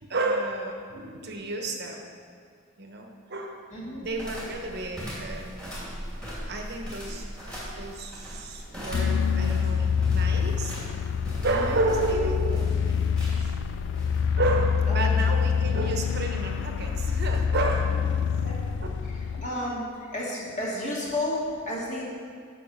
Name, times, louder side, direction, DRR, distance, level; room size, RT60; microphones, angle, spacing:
voice 1, 0.0-2.1 2.8-3.6 4.0-5.9 6.5-7.2 7.8-10.8 11.4-13.0 13.4-13.6 14.4-18.2, right 2 dB, 50° right, 2 dB, 1.0 m, -31 dB
voice 2, 3.7-4.1 11.4-11.8 14.9-15.3 18.3-18.6 19.1-22.0, left 1 dB, 35° left, -5 dB, 2.3 m, -33 dB
sound 1, 4.0-15.3, equal, 5° left, 2.5 m, -40 dB
sound 2, 8.9-19.5, left 6 dB, 55° left, 0.3 m, -26 dB
8.9 x 5.9 x 7.4 m, 2.1 s
head